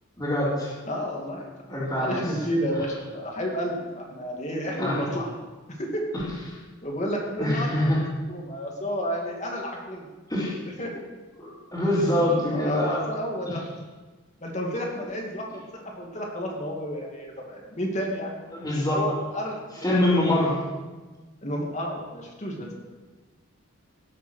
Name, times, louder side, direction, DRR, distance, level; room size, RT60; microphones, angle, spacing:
voice 1, 0.2-0.7 1.7-2.3 4.8-5.0 7.4-8.0 10.3-10.6 11.4-13.0 13.5-13.6 18.5-19.0 19.8-20.5, left 1 dB, 15° left, -12 dB, 3.7 m, -24 dB
voice 2, 0.9-1.5 1.9-5.3 5.7-6.0 6.8-7.9 8.3-10.1 10.6-11.0 12.0-13.6 14.4-18.3 18.9-19.9 21.4-22.7, equal, 35° left, -1 dB, 2.5 m, -31 dB
18.0 x 8.0 x 6.5 m, 1.3 s
head